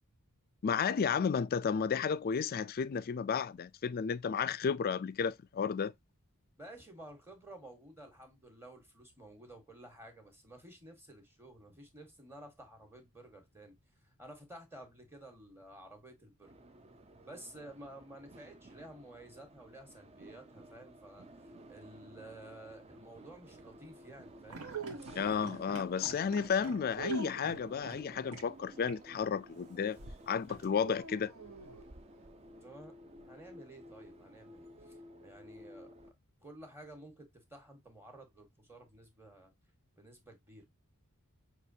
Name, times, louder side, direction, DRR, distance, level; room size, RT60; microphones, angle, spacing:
voice 1, 0.6-5.9 25.2-30.0 30.3-31.3, left 6 dB, 40° left, 0.3 m, -32 dB
voice 2, 6.6-13.7 14.0-16.5 17.2-24.6 32.6-33.0 33.2-35.9 36.4-39.5 40.0-40.6, right 1 dB, 10° right, 1.4 m, -53 dB
sound 1, 16.4-36.1, right 1 dB, 30° right, 0.5 m, -54 dB
sound 2, 24.5-25.6 26.9-27.8 30.8-31.9, right 4 dB, 65° right, 1.2 m, -43 dB
sound 3, 24.5-28.0 28.3-28.4 28.8-29.0 30.0-31.1, right 3 dB, 80° right, 1.2 m, -48 dB
6.0 x 3.0 x 2.7 m
head